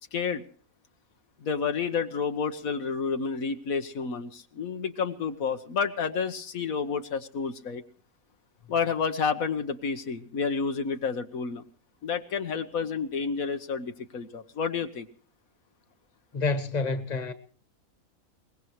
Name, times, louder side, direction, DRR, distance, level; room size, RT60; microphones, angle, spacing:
voice 1, 0.1-0.4 1.4-7.8 8.7-11.6 12.0-15.1, left 5 dB, 80° left, 1.5 m, -30 dB
voice 2, 16.3-17.3, left 3 dB, 30° left, 1.5 m, -28 dB
23.0 x 20.0 x 3.1 m
omnidirectional pair, 1.5 m